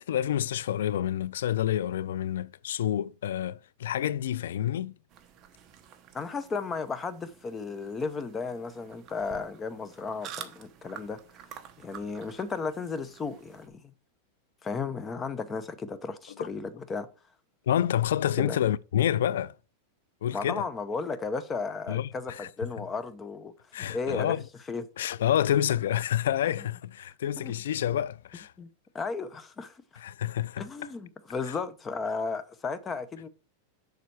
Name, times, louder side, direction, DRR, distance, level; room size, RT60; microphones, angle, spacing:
voice 1, 0.0-5.0 16.4-16.5 17.7-19.5 20.2-20.7 21.9-22.5 22.8-22.9 23.7-24.4 25.0-28.5 30.0-30.7 31.5-31.6, left 11 dB, 85° left, 0.3 m, -28 dB
sound 1, 5.1-13.7, right 9 dB, 30° right, 1.0 m, -49 dB
voice 2, 6.1-11.2 11.8-13.8 14.6-17.1 18.4-18.6 20.3-23.5 23.8-24.4 24.7-24.8 26.4-26.7 27.4-27.5 28.6-28.7 28.9-29.8 30.6-33.3, left 4 dB, 15° left, 0.7 m, -34 dB
6.9 x 6.4 x 4.6 m
supercardioid pair, 160°, 0 cm